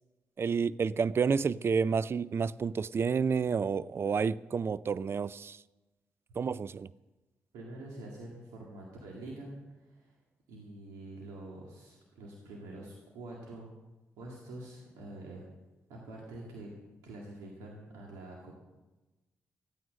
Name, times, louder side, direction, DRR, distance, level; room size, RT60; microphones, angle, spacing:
voice 1, 0.4-5.6 6.4-6.9, right 5 dB, 45° right, 0.4 m, -30 dB
voice 2, 7.5-10.2 10.5-13.8 14.2-15.4 15.9-16.7 17.0-18.5, right 2 dB, 90° right, 2.1 m, -46 dB
14.5 x 9.2 x 6.3 m
supercardioid pair, 45°, 6 cm